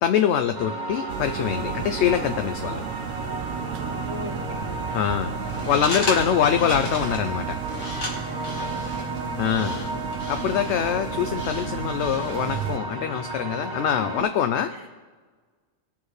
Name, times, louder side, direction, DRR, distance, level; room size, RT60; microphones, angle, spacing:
voice 1, 0.0-2.8 4.9-5.3 5.7-7.6 9.4-9.8 10.3-14.7, left 9 dB, 65° left, 8 dB, 0.8 m, -24 dB
sound 1, 0.5-14.2, right 2 dB, 35° right, 1.8 m, -33 dB
sound 2, 1.1-12.8, right 9 dB, 75° right, 0.9 m, -34 dB
voice 2, 4.1-5.0 8.7-9.2 14.0-14.3 14.7-14.9, left 2 dB, 25° left, -1 dB, 2.0 m, -39 dB
sound 3, 5.4-12.7, left 2 dB, 90° left, 2.3 m, -35 dB
20.5 x 7.1 x 3.2 m, 1.4 s
omnidirectional pair, 1.4 m